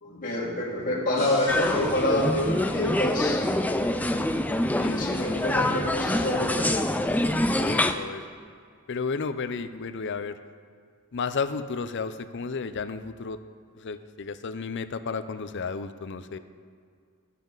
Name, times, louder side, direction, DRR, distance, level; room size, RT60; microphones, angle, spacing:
voice 1, 0.0-3.5 4.9-6.7, left 1 dB, 40° left, -5 dB, 2.4 m, -27 dB
sound 1, 1.1-4.4, equal, 30° right, 3.3 m, -44 dB
sound 2, 1.5-7.9, left 1 dB, 5° left, 0.4 m, -25 dB
voice 2, 4.7-5.5 7.6-8.2 8.9-10.4 11.1-13.4 13.7-16.4, left 5 dB, 55° left, 11 dB, 0.6 m, -33 dB
19.0 x 7.5 x 3.9 m, 2.2 s
head